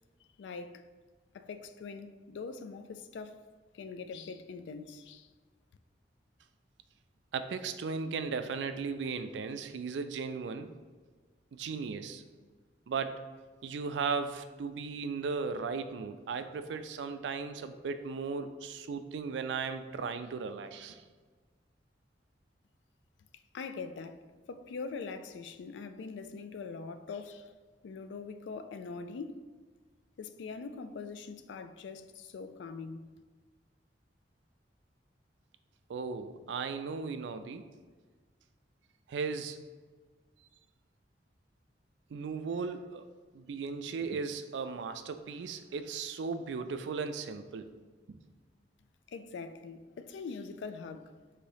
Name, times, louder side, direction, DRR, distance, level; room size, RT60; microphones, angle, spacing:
voice 1, 0.4-0.8 1.3-3.4 3.7-5.3 23.3-27.5 27.8-29.5 30.2-33.1 49.1-51.2, left 4 dB, 85° left, 0.3 m, -43 dB
voice 2, 7.3-10.7 11.5-12.2 12.9-13.2 13.6-21.0 35.9-37.7 39.1-39.6 42.1-43.1 43.3-47.7 48.1-48.2, right 5 dB, 85° right, 0.4 m, -36 dB
4.0 x 2.7 x 4.9 m
head